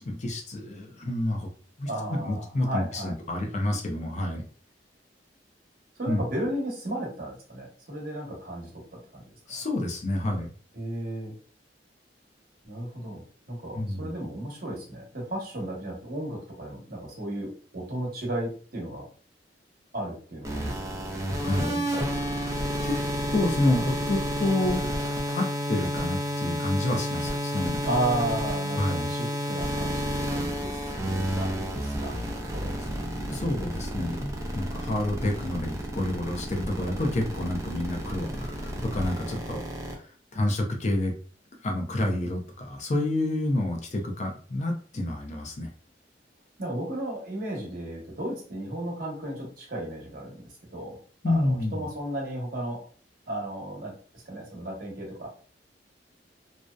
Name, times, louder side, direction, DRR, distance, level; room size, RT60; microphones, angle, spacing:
voice 1, 0.0-1.5 1.8-4.4 6.1-6.2 9.5-10.5 13.7-14.1 21.3-21.8 22.8-23.0 23.3-24.8 25.3-27.8 28.7-29.1 33.3-39.6 39.9-40.0 40.3-41.1 41.6-45.7 51.2-51.9, left 1 dB, 40° left, 3 dB, 0.5 m, -29 dB
voice 2, 1.9-3.1 6.0-8.8 9.1-9.2 9.5-9.6 10.7-11.3 12.6-19.1 19.9-20.6 21.3-22.4 27.8-32.2 32.5-32.8 46.6-51.0 51.2-52.8 53.3-55.3, right 1 dB, 55° right, -2 dB, 1.0 m, -34 dB
sound 1, 20.4-39.9, equal, 15° right, 0.5 m, -31 dB
2.6 x 2.0 x 2.3 m, 0.42 s
head